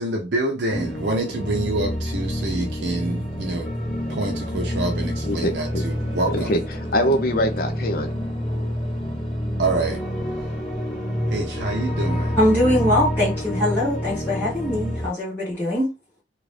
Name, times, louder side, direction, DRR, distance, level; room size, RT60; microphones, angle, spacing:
voice 1, 0.0-3.7 4.1-6.6 9.6-10.0 11.3-12.4, right 2 dB, 65° right, 0.6 m, -27 dB
sound 1, 0.7-15.1, equal, 30° left, 1.5 m, -27 dB
voice 2, 5.2-5.8 6.3-6.6 6.9-8.1, equal, 50° left, 0.6 m, -23 dB
voice 3, 12.4-15.9, left 1 dB, 10° left, 1.2 m, -22 dB
2.9 x 2.5 x 3.2 m
head